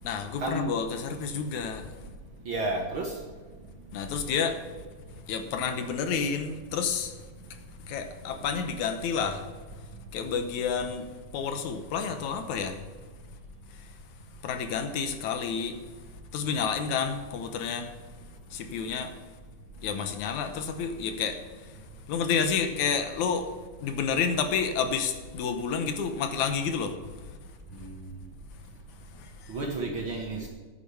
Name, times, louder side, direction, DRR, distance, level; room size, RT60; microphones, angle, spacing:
voice 1, 0.0-1.9 3.9-4.6 5.3-7.2 7.9-9.5 10.1-12.8 13.7-13.9 14.4-15.8 16.3-18.0 18.5-19.1 19.8-21.8 22.1-23.5 23.8-27.0 29.1-29.6, left 6 dB, 75° left, 7 dB, 2.4 m, -30 dB
voice 2, 2.5-3.1 27.8-28.0 29.5-30.5, right 2 dB, 50° right, 1 dB, 1.8 m, -31 dB
10.5 x 9.2 x 6.9 m, 1.4 s
omnidirectional pair, 3.5 m